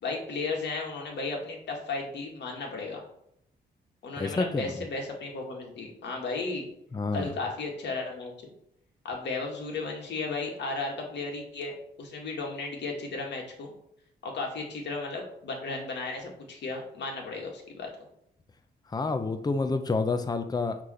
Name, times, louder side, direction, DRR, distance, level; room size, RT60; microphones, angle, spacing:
voice 1, 0.0-3.0 4.0-6.7 7.1-8.3 9.0-11.7 12.0-13.7 14.2-17.9, left 3 dB, 75° left, 0 dB, 2.0 m, -34 dB
voice 2, 4.2-4.8 6.9-7.3 18.9-20.8, left 3 dB, 20° left, 7 dB, 0.7 m, -29 dB
6.0 x 3.3 x 5.6 m, 0.74 s
cardioid pair, 95°, 18 cm